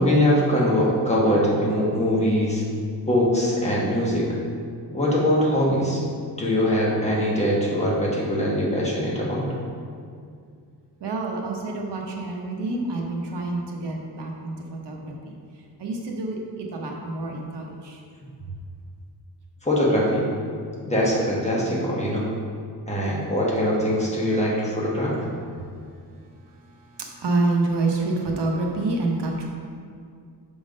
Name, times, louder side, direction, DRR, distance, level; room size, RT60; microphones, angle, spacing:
voice 1, 0.0-2.6 3.1-4.3 4.9-6.0 6.4-9.5 19.6-20.3 20.9-22.2 22.9-25.3, equal, 15° left, -5 dB, 1.2 m, -22 dB
voice 2, 11.0-15.1 15.8-16.4 16.7-18.0 27.2-29.5, right 2 dB, 75° right, 0 dB, 1.0 m, -27 dB
6.2 x 3.7 x 5.1 m, 2.3 s
wide cardioid pair, 155°, 41 cm